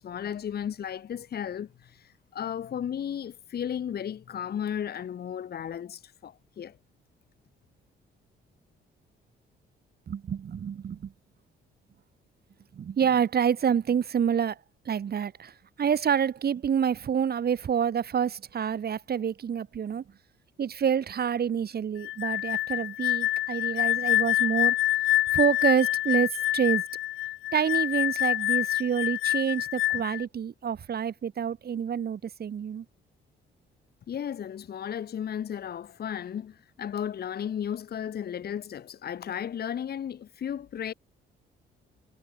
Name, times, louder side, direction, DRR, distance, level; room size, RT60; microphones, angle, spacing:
voice 1, 0.0-6.8 34.1-40.9, left 9 dB, 50° left, 1.3 m, -34 dB
voice 2, 10.1-11.1 12.7-14.6 14.8-20.0 20.6-24.8 25.3-26.8 27.5-32.8, right 8 dB, 50° right, 3.1 m, -27 dB
sound 1, 22.0-30.2, left 15 dB, 85° left, 1.1 m, -26 dB
cardioid pair, 90°, 20 cm